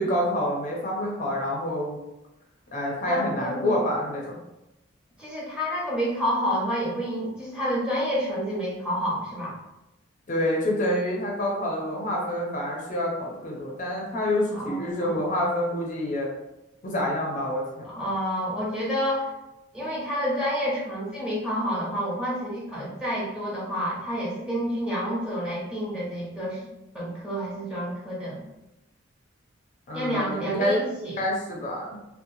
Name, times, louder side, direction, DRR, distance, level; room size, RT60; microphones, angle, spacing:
voice 1, 0.0-2.0 2.7-4.4 10.3-16.3 16.8-17.9 29.9-30.8 31.2-32.0, left 1 dB, 40° left, -2 dB, 0.5 m, -27 dB
voice 2, 3.1-3.8 5.2-9.5 14.5-15.2 17.8-19.3 19.7-26.6 26.9-28.4 29.9-31.2, equal, 5° right, -6 dB, 0.8 m, -29 dB
2.9 x 2.1 x 2.6 m, 0.94 s
head